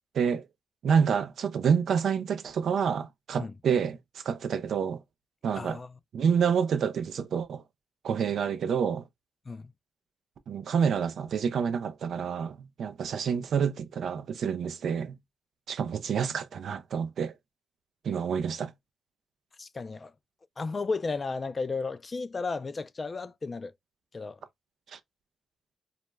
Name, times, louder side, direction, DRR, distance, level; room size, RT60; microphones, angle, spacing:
voice 1, 0.8-4.0 4.2-5.0 5.4-5.8 6.1-7.6 8.0-9.1 10.5-15.1 15.7-17.3 18.0-18.7 24.9-25.0, right 7 dB, 70° right, 0.3 m, -28 dB
voice 2, 5.5-5.9 9.5-9.7 19.6-20.1 20.6-23.7 24.1-24.4, left 4 dB, 35° left, 0.3 m, -34 dB
2.3 x 2.1 x 3.0 m
cardioid pair, 65°, 0 cm